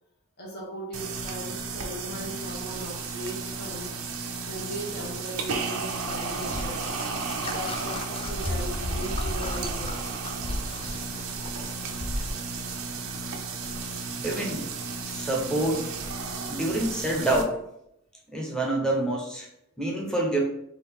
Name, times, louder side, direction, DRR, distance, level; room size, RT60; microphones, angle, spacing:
voice 1, 0.4-3.9 4.5-6.9 7.4-10.2 10.9-11.0, right 1 dB, 50° left, -2 dB, 1.1 m, -38 dB
sound 1, 0.9-17.4, right 4 dB, 75° right, 0.5 m, -34 dB
sound 2, 6.1-12.4, left 1 dB, 25° left, 0.4 m, -35 dB
voice 2, 14.2-14.7 15.1-15.9 16.5-17.6 18.3-19.5 19.8-20.4, right 1 dB, 5° left, -2 dB, 0.9 m, -27 dB
4.0 x 2.6 x 3.5 m, 0.75 s
head